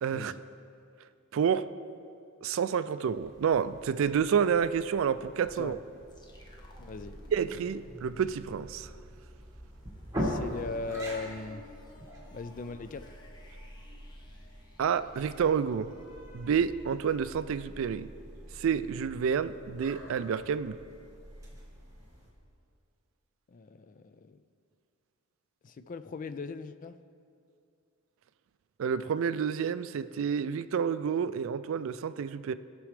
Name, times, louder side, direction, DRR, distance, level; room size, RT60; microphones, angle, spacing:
voice 1, 0.0-0.3 1.3-1.7 2.4-5.8 7.3-8.9 14.8-15.9 16.3-18.1 18.6-20.8 28.8-32.5, right 7 dB, 70° right, 13 dB, 0.3 m, -29 dB
sound 1, 3.1-22.3, equal, 15° right, 1.7 m, -43 dB
sound 2, 6.1-15.9, left 1 dB, 20° left, 0.9 m, -55 dB
voice 2, 6.8-7.2 10.2-11.6 12.3-13.1 23.5-24.4 25.6-27.0, left 3 dB, 40° left, 11 dB, 0.4 m, -39 dB
18.0 x 6.1 x 3.3 m, 2.4 s
head